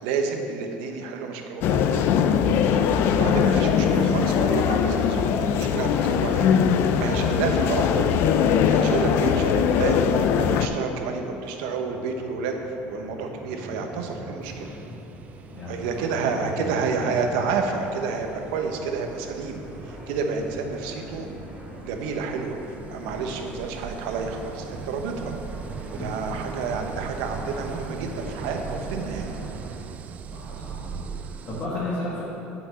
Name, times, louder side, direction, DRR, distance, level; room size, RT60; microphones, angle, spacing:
voice 1, 0.0-2.0 3.1-6.5 7.0-8.2 8.7-12.6 12.9-14.7 15.7-21.3 21.8-22.6 22.9-25.3 25.9-29.4, right 5 dB, 85° right, 4 dB, 0.9 m, -29 dB
sound 1, 1.6-10.7, left 7 dB, 50° left, 0.4 m, -21 dB
sound 2, 11.2-29.8, right 1 dB, 5° right, 2.0 m, -41 dB
sound 3, 14.4-31.7, right 7 dB, 30° right, 0.3 m, -40 dB
voice 2, 15.5-16.1 16.4-16.7 25.9-26.1 30.3-32.2, left 1 dB, 30° left, -9 dB, 1.7 m, -34 dB
6.0 x 5.9 x 7.2 m, 2.9 s
cardioid pair, 160°, 5 cm